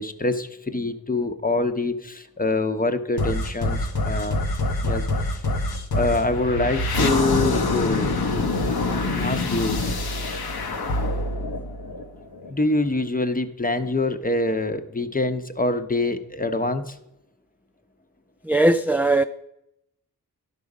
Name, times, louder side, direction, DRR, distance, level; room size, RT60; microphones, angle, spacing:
voice 1, 0.0-4.4 4.8-5.4 5.9-8.1 9.1-9.8 12.5-17.0, left 2 dB, 25° left, 9 dB, 0.8 m, -25 dB
sound 1, 3.2-12.5, left 2 dB, 80° left, 0.9 m, -25 dB
voice 2, 18.5-19.2, right 2 dB, 5° right, 7 dB, 0.3 m, -19 dB
11.5 x 5.4 x 4.9 m, 0.83 s
cardioid pair, 40°, 37 cm